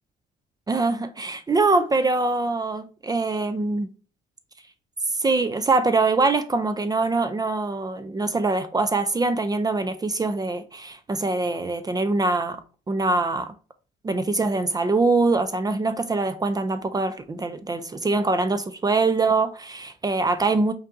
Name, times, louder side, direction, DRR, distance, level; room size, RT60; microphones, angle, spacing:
voice 1, 0.7-3.9 5.2-12.6 12.9-13.5 14.0-20.7, right 3 dB, 20° right, 0.3 m, -23 dB
5.2 x 2.6 x 2.5 m
cardioid pair, 105°, 19 cm